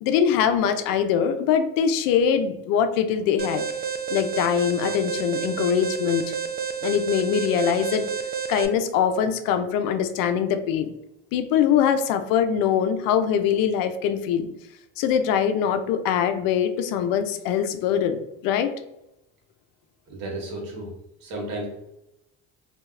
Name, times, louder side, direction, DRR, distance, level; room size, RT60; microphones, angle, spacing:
voice 1, 0.0-3.7 4.1-6.3 6.8-8.0 8.5-10.9 11.3-14.5 15.0-18.7, left 8 dB, 75° left, 9 dB, 0.5 m, -23 dB
Alarm, 3.4-8.7, right 7 dB, 30° right, 0.4 m, -30 dB
voice 2, 20.1-20.9 21.2-21.7, right 1 dB, 70° right, -1 dB, 1.3 m, -33 dB
2.7 x 2.2 x 3.1 m, 0.85 s
supercardioid pair, 80°, 35 cm